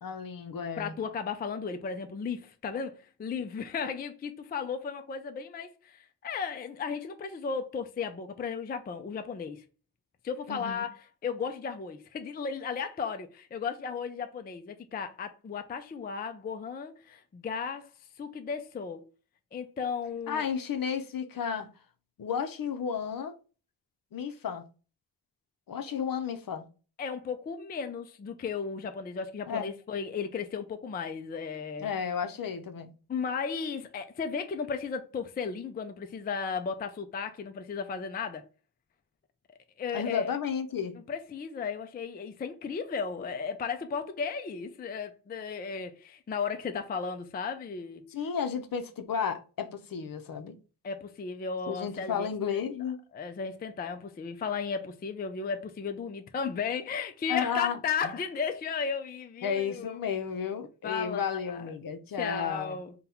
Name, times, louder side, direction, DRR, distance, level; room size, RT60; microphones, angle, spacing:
voice 1, 0.0-0.9 10.5-10.9 20.3-21.7 22.2-23.4 24.1-24.6 25.7-26.7 29.5-29.7 31.8-32.9 39.9-41.0 48.1-50.5 51.7-53.0 57.3-58.1 59.4-62.8, left 7 dB, 55° left, 0.7 m, -33 dB
voice 2, 0.8-9.6 10.2-17.9 18.2-19.0 19.5-20.5 27.0-31.9 33.1-38.4 39.8-40.3 41.1-48.1 50.8-52.6 53.1-60.0 60.8-61.7 62.2-62.9, left 5 dB, 25° left, 0.3 m, -35 dB
3.9 x 2.2 x 4.2 m
wide cardioid pair, 140°, 40 cm